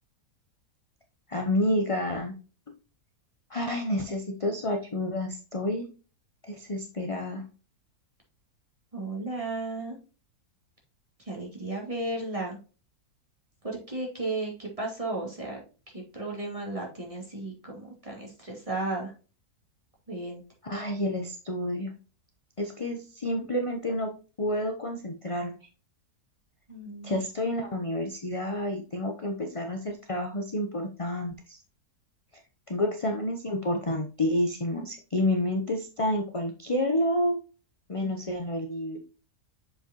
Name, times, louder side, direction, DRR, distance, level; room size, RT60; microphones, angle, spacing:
voice 1, 1.3-2.3 3.5-5.9 6.5-7.4 20.6-21.9 22.6-24.1 24.4-25.7 27.0-31.6 32.7-37.4 37.9-39.0, left 1 dB, 30° left, 4 dB, 0.7 m, -29 dB
voice 2, 8.9-10.0 11.3-12.6 13.6-15.6 15.9-19.1 20.1-20.4 26.7-27.3 38.0-38.1, right 2 dB, 20° right, -2 dB, 2.4 m, -34 dB
7.0 x 5.5 x 2.9 m, 0.35 s
omnidirectional pair, 1.7 m